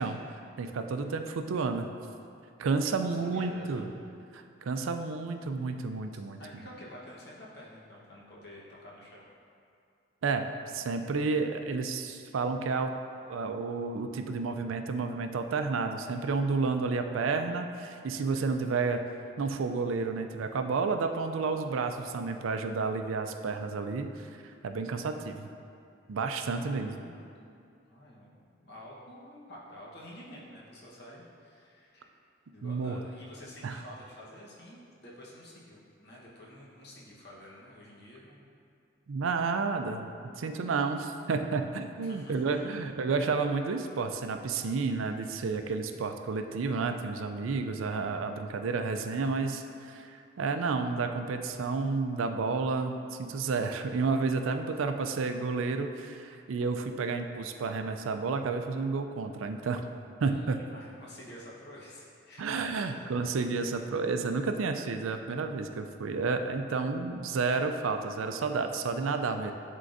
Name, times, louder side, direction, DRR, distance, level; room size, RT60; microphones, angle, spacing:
voice 1, 0.0-1.9 2.6-3.9 4.3-6.4 10.2-13.0 13.3-19.0 19.4-24.1 24.6-25.5 26.1-27.0 32.6-33.0 33.6-33.8 39.1-59.8 60.2-60.6 62.4-69.5, right 4 dB, 85° right, 6 dB, 0.4 m, -31 dB
voice 2, 2.7-3.9 6.4-9.3 26.5-27.2 27.9-28.3 28.6-32.2 32.5-38.4 42.0-42.7 60.2-60.5 60.7-63.0, left 1 dB, 55° left, -5 dB, 1.2 m, -49 dB
11.0 x 3.7 x 2.6 m, 2.5 s
head